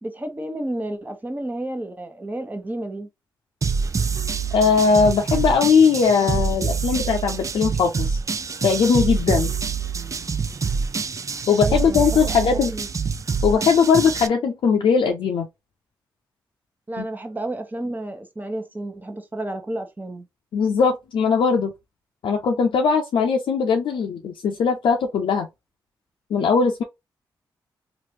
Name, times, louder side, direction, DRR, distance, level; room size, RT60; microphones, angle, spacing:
voice 1, 0.0-3.1 11.6-12.9 16.9-20.3, right 1 dB, 20° right, 1.0 m, -31 dB
sound 1, 3.6-14.3, right 5 dB, 40° right, 0.4 m, -26 dB
voice 2, 4.5-8.2 8.6-9.5 11.5-12.7 13.4-15.5 17.0-17.1 20.5-21.7 22.2-25.5 26.3-26.8, left 5 dB, 75° left, 0.6 m, -19 dB
3.1 x 2.5 x 2.9 m
supercardioid pair, 50°, 8 cm